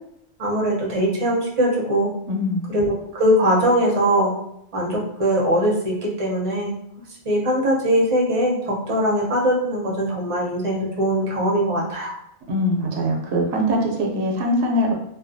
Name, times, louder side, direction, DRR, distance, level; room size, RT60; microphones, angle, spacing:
voice 1, 0.4-2.1 2.7-4.3 4.7-6.8 7.2-12.1, equal, 35° right, -3 dB, 0.7 m, -21 dB
voice 2, 2.3-2.6 12.5-14.9, equal, 80° right, 0 dB, 0.9 m, -22 dB
2.4 x 2.3 x 2.6 m, 0.75 s
omnidirectional pair, 1.1 m